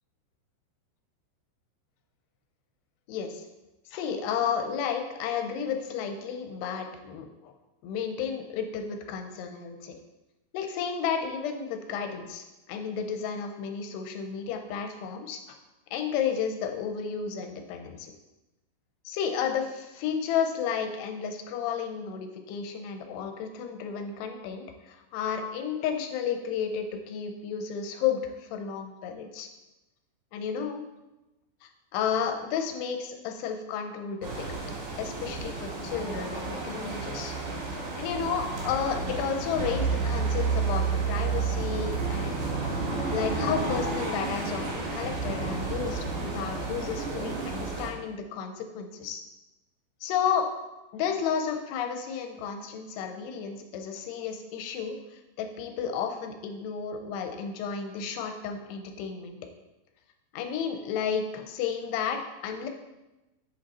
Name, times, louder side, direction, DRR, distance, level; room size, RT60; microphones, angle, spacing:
voice 1, 3.1-3.4 3.9-7.5 7.8-9.9 10.5-15.4 15.9-18.1 19.0-29.5 30.3-30.8 31.6-34.6 35.0-37.3 38.0-42.6 43.1-49.2 50.0-50.5 50.9-59.4 60.3-62.7, left 7 dB, 75° left, 5 dB, 2.7 m, -32 dB
sound 1, 34.2-47.9, right 4 dB, 60° right, 3.2 m, -31 dB
7.9 x 7.6 x 4.2 m, 1.0 s
omnidirectional pair, 5.3 m